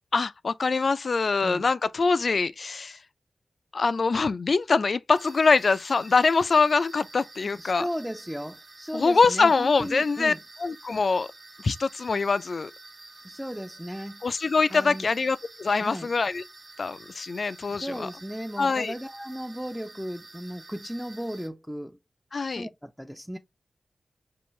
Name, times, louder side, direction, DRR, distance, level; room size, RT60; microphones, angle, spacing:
voice 1, 0.1-3.0 3.7-7.8 8.9-10.3 10.6-11.3 11.6-12.7 14.2-16.4 16.8-18.1 18.6-18.9 22.3-22.7, left 4 dB, 65° left, 0.3 m, -24 dB
sound 1, 5.1-21.5, right 2 dB, 50° right, 0.9 m, -49 dB
voice 2, 7.6-10.4 13.2-14.2 14.7-15.1 15.8-16.1 17.8-22.0 22.5-23.4, equal, 5° right, 0.5 m, -35 dB
5.4 x 2.5 x 3.1 m
cardioid pair, 50°, 0 cm